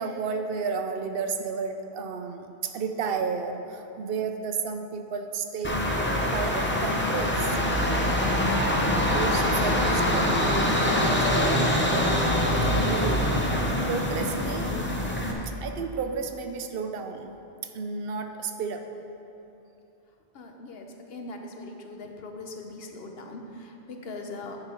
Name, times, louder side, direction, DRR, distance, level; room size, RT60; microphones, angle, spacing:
voice 1, 0.0-7.5 8.1-12.4 12.7-13.3 13.9-17.3 17.6-18.8, right 5 dB, 65° right, 6 dB, 0.7 m, -32 dB
sound 1, 5.6-15.3, left 1 dB, 15° left, 0.5 m, -24 dB
voice 2, 20.3-24.6, left 2 dB, 65° left, 3 dB, 1.0 m, -40 dB
8.9 x 5.8 x 4.4 m, 2.9 s
omnidirectional pair, 1.1 m